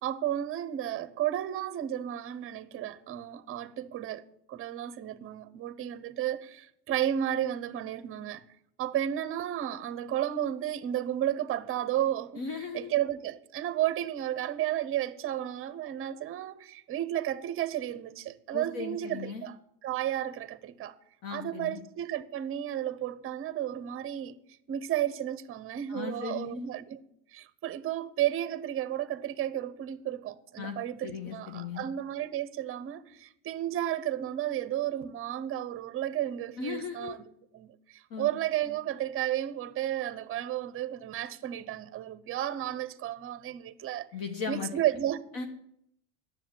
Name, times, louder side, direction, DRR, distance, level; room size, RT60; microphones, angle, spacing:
voice 1, 0.0-4.2 4.5-8.4 8.8-12.4 12.7-21.0 21.3-24.4 24.7-27.0 27.3-37.2 37.5-44.1 44.5-45.2, right 12 dB, 30° right, 0.8 m, -33 dB
voice 2, 12.4-12.9 18.5-19.5 21.2-21.8 25.9-26.7 30.6-30.8 31.0-31.9 36.6-37.2 38.1-38.3 44.1-44.7 45.3-45.5, left 5 dB, 50° left, 1.4 m, -37 dB
9.9 x 7.5 x 9.1 m
supercardioid pair, 140°, 43 cm